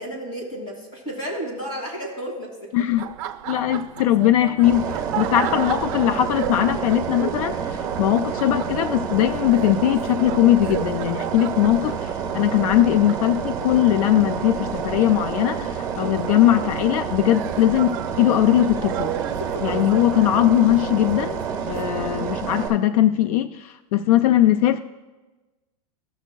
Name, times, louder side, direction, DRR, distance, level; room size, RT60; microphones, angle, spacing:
voice 1, 0.0-2.7 5.3-5.6 12.3-12.4 19.4-19.5 21.7-22.3, equal, 25° left, -2 dB, 2.6 m, -33 dB
voice 2, 2.7-3.0 3.5-4.9 5.1-12.1 12.3-19.1 19.6-21.4 21.7-24.8, left 12 dB, 80° left, 8 dB, 0.4 m, -20 dB
Laughter, 2.9-22.7, right 12 dB, 50° right, 0.5 m, -36 dB
sound 1, 4.6-22.7, right 7 dB, 20° right, 1.0 m, -29 dB
15.5 x 6.2 x 2.3 m, 1.2 s
supercardioid pair, 165°, 18 cm